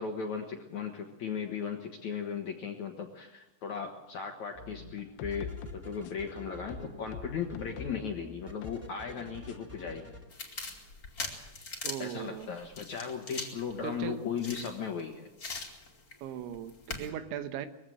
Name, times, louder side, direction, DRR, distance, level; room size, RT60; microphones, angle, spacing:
voice 1, 0.0-5.5 5.8-10.1 12.0-15.3, left 6 dB, 60° left, 3 dB, 2.0 m, -37 dB
sound 1, 4.5-4.9 5.3-10.2, equal, 5° right, 2.0 m, -47 dB
sound 2, 5.0-6.3 6.7-8.0 8.6-8.9 9.5-9.6, left 7 dB, 80° left, 3.2 m, -43 dB
sound 3, 10.3-15.0 15.4-16.1 16.5-17.1, left 3 dB, 25° left, 2.5 m, -41 dB
voice 2, 11.8-12.5 13.8-14.2 16.2-17.7, right 10 dB, 85° right, 9 dB, 3.5 m, -38 dB
22.0 x 16.0 x 7.7 m, 0.93 s
omnidirectional pair, 5.2 m